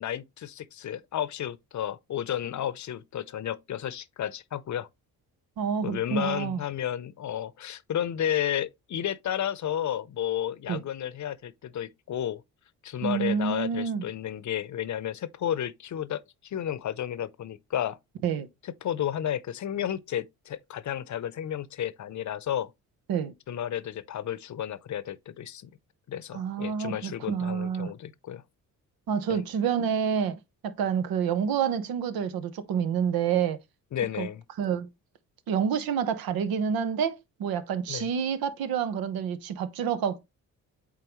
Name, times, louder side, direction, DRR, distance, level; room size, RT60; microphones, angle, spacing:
voice 1, 0.0-4.9 5.8-12.4 12.8-18.0 18.8-22.7 23.5-25.7 26.1-28.4 29.3-29.4 33.9-34.4 37.9-38.1, left 10 dB, 55° left, 0.7 m, -32 dB
voice 2, 5.6-6.6 10.7-10.8 13.0-14.1 18.2-18.5 23.1-23.3 26.3-27.9 29.1-33.6 34.2-34.3 34.6-34.9 35.5-40.2, right 7 dB, 85° right, 0.9 m, -28 dB
8.4 x 3.7 x 3.0 m
cardioid pair, 80°, 35 cm